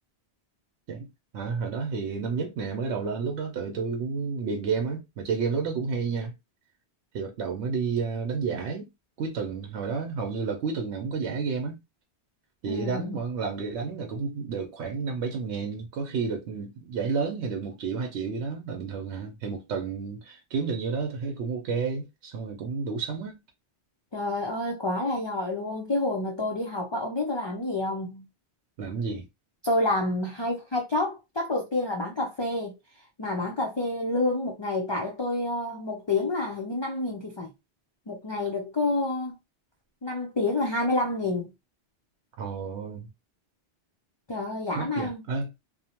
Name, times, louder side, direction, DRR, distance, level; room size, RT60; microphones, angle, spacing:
voice 1, 1.3-6.3 7.1-8.9 9.2-11.8 12.6-23.4 28.8-29.3 42.4-43.1 44.7-45.5, right 5 dB, 80° right, 0.9 m, -31 dB
voice 2, 12.7-13.2 24.1-28.3 29.6-32.8 33.2-37.5 38.1-39.3 40.0-41.5 44.3-45.2, left 2 dB, 45° left, 0.3 m, -28 dB
2.8 x 2.0 x 2.7 m
omnidirectional pair, 1.2 m